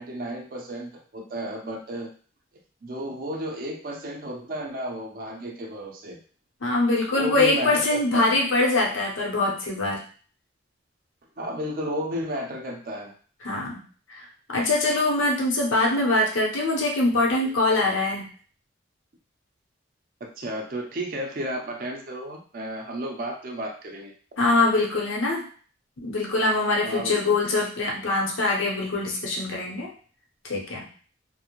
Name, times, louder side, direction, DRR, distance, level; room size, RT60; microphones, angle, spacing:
voice 1, 0.0-2.1 2.8-6.2 7.1-8.4 11.4-13.1 20.2-24.1 26.8-27.4, equal, 45° right, 1 dB, 0.4 m, -33 dB
voice 2, 6.6-10.0 13.4-13.8 14.1-18.2 24.4-25.4 26.0-29.9 30.4-30.9, left 2 dB, 85° left, -1 dB, 0.7 m, -23 dB
2.4 x 2.0 x 2.9 m, 0.42 s
head